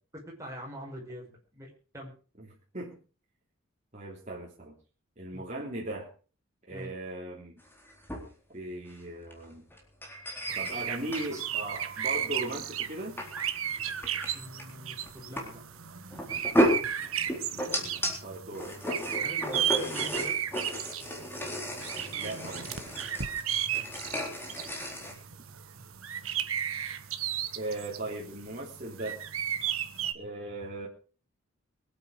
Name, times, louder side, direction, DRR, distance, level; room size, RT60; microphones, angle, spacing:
voice 1, 0.3-2.1 5.3-5.5 6.7-6.9 11.3-11.4 14.3-15.6 19.2-20.4 23.7-24.4, equal, 15° right, -2 dB, 5.6 m, -44 dB
voice 2, 3.9-4.8 5.2-6.1 6.7-7.6 8.5-9.7 10.5-13.2 17.5-18.7 22.1-22.7 27.6-29.2 30.1-30.9, right 1 dB, 35° right, -3 dB, 3.3 m, -38 dB
sound 1, 7.7-8.3 8.9-9.0 9.3-9.4 9.7-11.4 12.5-12.6 13.2-13.6 13.9-14.3 14.6-14.7 15.0-15.4 16.1-18.2 18.5-25.1, equal, 10° left, 3.9 m, -33 dB
sound 2, 10.5-30.1, right 9 dB, 90° right, 1.4 m, -34 dB
23.5 x 9.0 x 5.0 m, 0.38 s
head